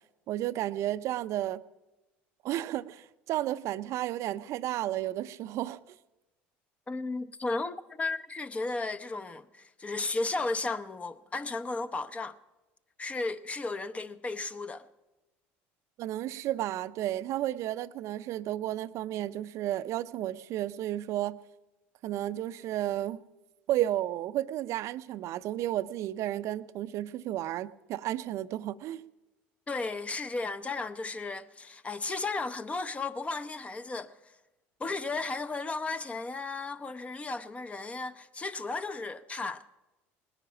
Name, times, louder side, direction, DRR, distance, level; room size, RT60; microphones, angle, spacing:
voice 1, 0.3-1.6 2.4-5.8 16.0-21.4 22.0-23.2 23.7-29.0, right 13 dB, 60° right, 0.6 m, -32 dB
voice 2, 6.9-12.4 13.0-14.9 29.7-34.1 34.8-39.7, left 3 dB, 20° left, 0.8 m, -34 dB
19.5 x 10.0 x 7.1 m
supercardioid pair, 85°, 6 cm